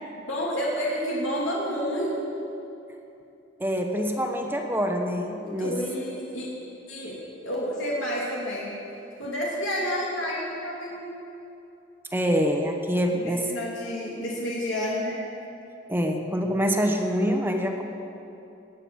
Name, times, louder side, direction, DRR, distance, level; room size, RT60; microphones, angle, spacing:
voice 1, 0.3-2.1 5.5-6.5 6.9-7.2 7.4-8.7 9.2-11.0 13.2-15.2, equal, 85° left, -5 dB, 2.9 m, -29 dB
voice 2, 3.6-5.8 12.1-13.5 15.9-17.8, equal, 10° right, 3 dB, 1.1 m, -25 dB
19.5 x 9.1 x 7.3 m, 2.8 s
head